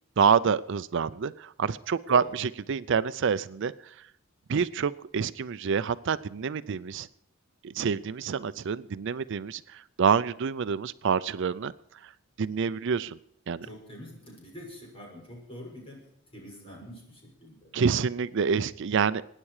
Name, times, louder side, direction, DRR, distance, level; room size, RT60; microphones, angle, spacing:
voice 1, 0.2-4.0 4.5-7.1 7.6-11.7 12.0-12.1 12.4-13.2 13.5-13.7 17.7-19.2, right 6 dB, 65° right, 15 dB, 0.5 m, -27 dB
voice 2, 13.6-16.0 16.3-17.7, equal, 30° left, -2 dB, 6.6 m, -45 dB
23.5 x 10.0 x 4.9 m, 0.75 s
head